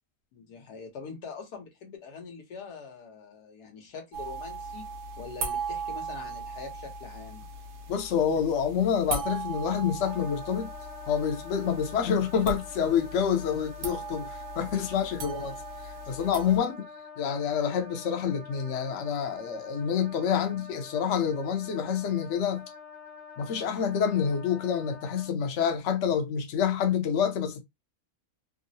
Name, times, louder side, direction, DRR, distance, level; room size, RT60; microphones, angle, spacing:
voice 1, 0.3-4.9 5.2-7.5, left 5 dB, 85° left, 1.5 m, -43 dB
sound 1, 4.1-16.6, right 4 dB, 70° right, 1.3 m, -38 dB
voice 2, 7.9-10.7 11.1-15.6 16.1-16.8 17.2-22.6 23.4-27.6, left 7 dB, 60° left, 0.9 m, -27 dB
Wind instrument woodwind instrument, 10.0-25.3, left 4 dB, ahead, 0.6 m, -46 dB
3.6 x 2.0 x 2.7 m
omnidirectional pair, 1.7 m